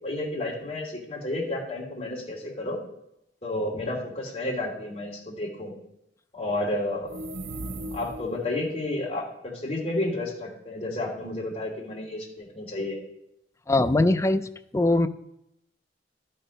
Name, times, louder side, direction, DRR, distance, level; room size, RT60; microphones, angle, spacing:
voice 1, 0.0-2.8 3.4-5.7 6.3-7.1 7.9-13.0, left 1 dB, 35° left, -5 dB, 3.0 m, -31 dB
sound 1, 7.0-8.5, right 1 dB, 85° right, 0.6 m, -37 dB
voice 2, 13.7-15.1, left 2 dB, 15° left, 9 dB, 0.4 m, -22 dB
12.0 x 4.4 x 5.1 m, 0.80 s
head